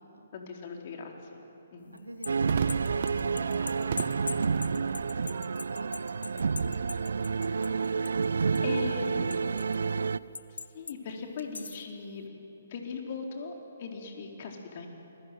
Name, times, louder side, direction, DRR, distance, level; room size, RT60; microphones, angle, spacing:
voice 1, 0.3-1.4 1.7-1.9 8.6-9.3 10.5-13.5 13.8-14.9, left 5 dB, 45° left, 2 dB, 4.3 m, -39 dB
voice 2, 1.9-4.3 4.6-5.3 5.7-7.9 8.5-10.1, right 1 dB, 85° right, 4 dB, 3.4 m, -46 dB
sound 1, 2.0-8.3 8.6-9.8 10.4-11.0 11.4-11.9, left 4 dB, 70° left, 0.9 m, -41 dB
sound 2, 2.3-10.2, right 5 dB, 65° right, 0.6 m, -29 dB
Crowd / Fireworks, 2.5-9.0, right 8 dB, 50° right, 0.9 m, -39 dB
28.0 x 21.0 x 9.4 m, 3.0 s
figure-of-eight pair, 130°, 0 cm